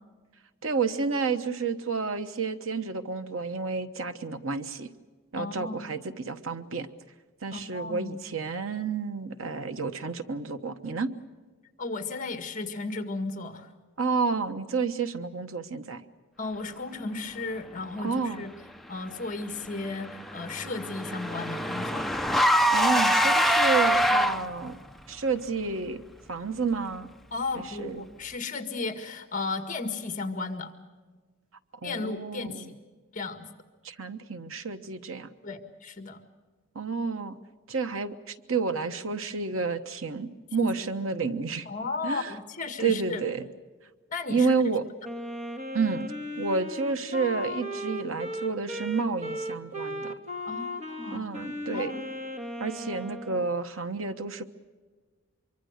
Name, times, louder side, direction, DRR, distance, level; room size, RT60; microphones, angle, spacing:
voice 1, 0.6-4.9 5.3-6.9 7.4-11.1 14.0-16.0 18.0-18.5 22.7-24.8 25.1-26.0 26.3-27.1 27.5-28.0 31.8-32.7 33.8-35.3 36.7-37.4 37.7-41.7 42.0-42.3 42.8-43.5 44.3-44.8 45.7-46.1 46.4-50.1 51.1-51.9 52.6-54.5, right 4 dB, 85° right, 9 dB, 1.2 m, -30 dB
voice 2, 5.3-5.9 7.5-8.2 11.8-13.7 16.4-18.5 18.9-22.1 27.3-30.7 31.8-32.7 33.1-33.5 35.4-36.2 41.7-43.2 44.1-44.5 50.5-51.3 51.7-52.0, left 3 dB, 40° left, 8 dB, 1.8 m, -34 dB
Car / Engine, 19.6-24.7, equal, ahead, 0.6 m, -24 dB
Wind instrument woodwind instrument, 45.0-53.5, left 1 dB, 35° right, 1.7 m, -36 dB
25.0 x 24.0 x 6.6 m, 1.4 s
head